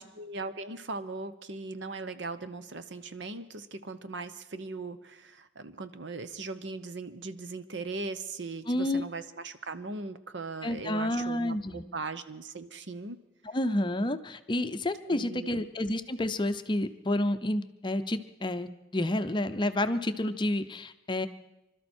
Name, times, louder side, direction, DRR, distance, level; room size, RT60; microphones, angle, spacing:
voice 1, 0.0-13.2 15.0-15.6, right 3 dB, 70° right, 11 dB, 0.8 m, -39 dB
voice 2, 8.7-9.0 10.6-11.8 13.5-21.3, left 1 dB, 25° left, 10 dB, 0.6 m, -30 dB
25.5 x 12.5 x 4.4 m, 0.94 s
head